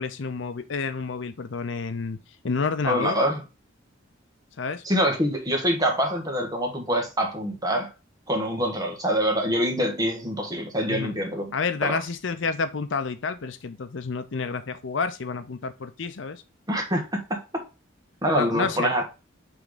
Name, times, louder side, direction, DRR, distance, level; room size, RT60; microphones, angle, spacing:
voice 1, 0.0-2.2 2.4-3.2 4.6-4.8 10.9-11.2 11.5-16.4 18.4-18.9, left 4 dB, 65° left, 0.6 m, -29 dB
voice 2, 2.8-3.4 4.8-7.9 8.3-11.5 11.8-12.0 16.7-17.0 17.3-17.4 18.2-19.0, equal, 20° right, 1.6 m, -25 dB
6.1 x 3.5 x 4.9 m
head